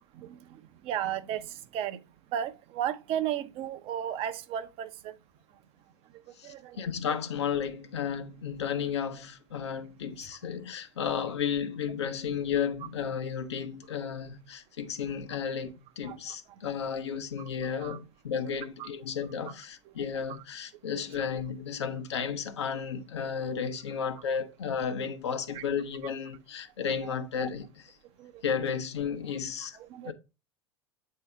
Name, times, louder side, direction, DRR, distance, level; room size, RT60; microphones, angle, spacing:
voice 1, 0.0-2.0 2.3-5.2 6.4-6.8 10.2-10.3 16.0-16.2 17.8-18.0 18.5-18.6 18.8-18.9 19.4-19.5 20.9-21.2 25.5-25.6 28.2-28.4 29.7-30.1, right 10 dB, 40° right, 0.6 m, -35 dB
voice 2, 6.4-27.9 28.4-29.8 30.0-30.1, left 7 dB, 65° left, 0.8 m, -33 dB
8.3 x 2.8 x 4.5 m
figure-of-eight pair, 80°, 15 cm